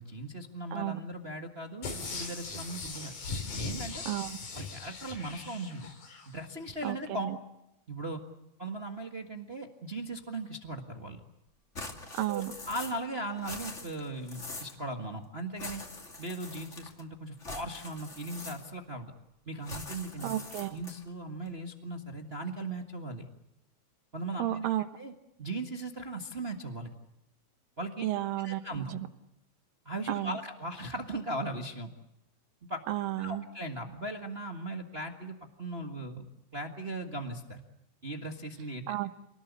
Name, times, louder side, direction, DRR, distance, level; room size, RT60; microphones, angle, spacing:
voice 1, 0.0-3.1 3.5-4.0 4.5-5.9 6.3-7.3 7.9-8.2 8.6-11.2 12.3-15.8 16.2-19.1 19.5-20.3 20.7-23.3 24.1-24.7 25.0-25.1 25.4-26.9 27.8-28.1 28.4-28.9 29.8-31.9 32.7-32.8 33.2-36.2 36.5-37.6 38.0-39.0, right 2 dB, 45° right, 3 dB, 0.7 m, -38 dB
sound 1, 1.8-6.3 6.7-6.8, left 4 dB, 85° left, 6.0 m, -39 dB
voice 2, 4.1-4.4 6.8-7.4 12.1-12.5 20.2-20.8 24.4-24.9 28.0-28.6 28.9-29.1 30.1-30.4 32.9-33.5 38.9-39.1, right 14 dB, 75° right, 10 dB, 2.9 m, -32 dB
sound 2, 11.7-13.1 13.3-14.8 15.6-17.0 17.4-18.9 19.6-21.1, left 2 dB, 20° left, 2.6 m, -44 dB
28.0 x 19.5 x 8.3 m, 0.86 s
omnidirectional pair, 4.1 m